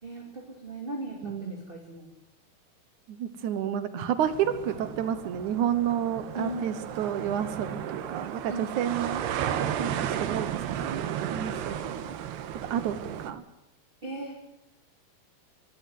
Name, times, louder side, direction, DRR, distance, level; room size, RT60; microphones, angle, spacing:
voice 1, 0.0-2.1 6.3-7.0 8.5-8.9 14.0-14.5, right 1 dB, 15° right, 1 dB, 2.2 m, -38 dB
voice 2, 1.2-1.7 3.1-9.2 9.8-11.0 11.3-12.2 12.7-13.0 13.2-13.4, right 9 dB, 65° right, 12 dB, 2.1 m, -30 dB
sound 1, 4.2-13.3, right 9 dB, 85° right, 3.4 m, -34 dB
23.5 x 13.0 x 9.4 m, 0.87 s
omnidirectional pair, 4.6 m